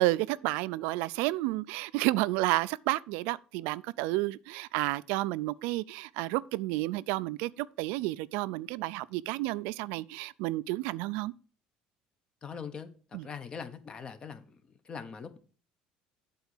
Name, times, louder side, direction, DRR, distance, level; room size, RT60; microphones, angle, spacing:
voice 1, 0.0-11.3 13.1-13.2, right 19 dB, 85° right, 0.3 m, -31 dB
voice 2, 12.4-15.4, left 6 dB, 35° left, 1.0 m, -42 dB
8.2 x 3.9 x 6.5 m
cardioid pair, 110°, 3 cm